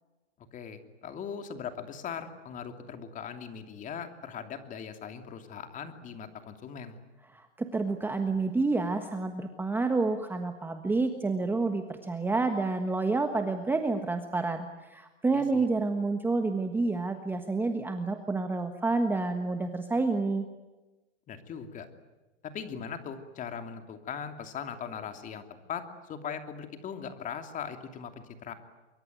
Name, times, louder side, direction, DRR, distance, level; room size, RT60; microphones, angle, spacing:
voice 1, 0.5-7.0 15.3-15.7 21.3-21.9 22.4-25.4 25.7-28.5, left 7 dB, 20° left, 7 dB, 2.8 m, -40 dB
voice 2, 7.3-20.4, right 3 dB, 5° right, 6 dB, 1.3 m, -29 dB
25.0 x 24.0 x 9.3 m, 1.1 s
hypercardioid pair, 135°, 35 cm